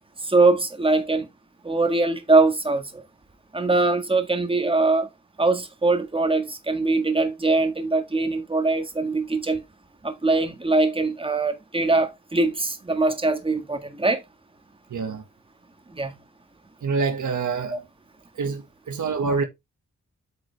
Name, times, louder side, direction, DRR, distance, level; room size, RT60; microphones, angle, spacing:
voice 1, 0.2-1.3 1.6-3.0 3.5-5.1 5.4-9.6 10.0-14.2 15.9-16.2 17.7-17.8, right 3 dB, 20° right, 1.7 m, -22 dB
voice 2, 14.9-15.2 16.8-17.8 18.4-19.4, right 4 dB, 80° right, 1.8 m, -26 dB
8.6 x 5.3 x 3.4 m
wide cardioid pair, 85°, 30 cm